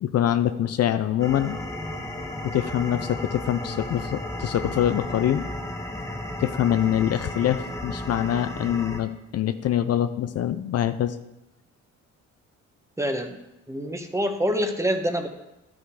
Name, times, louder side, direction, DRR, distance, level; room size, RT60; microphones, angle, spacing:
voice 1, 0.0-1.6 2.4-5.4 6.1-11.2, left 11 dB, 55° left, 10 dB, 0.5 m, -25 dB
sound 1, 1.2-9.0, left 1 dB, 10° left, 1.3 m, -34 dB
voice 2, 13.0-13.4 13.7-15.3, equal, 10° right, 6 dB, 1.1 m, -26 dB
11.5 x 6.1 x 4.8 m, 0.94 s
cardioid pair, 90°, 30 cm